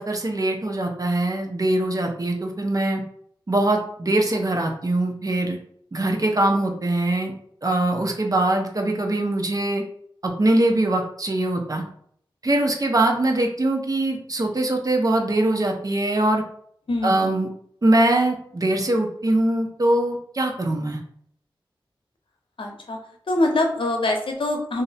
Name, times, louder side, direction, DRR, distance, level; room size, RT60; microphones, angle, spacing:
voice 1, 0.0-3.0 3.5-5.6 5.9-7.3 7.6-9.8 10.2-11.8 12.4-16.4 17.0-17.5 17.8-21.0, right 1 dB, 40° right, 2 dB, 0.7 m, -22 dB
voice 2, 16.9-17.3 22.6-23.0 23.3-24.8, left 2 dB, 70° left, 2 dB, 0.7 m, -24 dB
2.5 x 2.1 x 3.9 m, 0.64 s
cardioid pair, 45°, 9 cm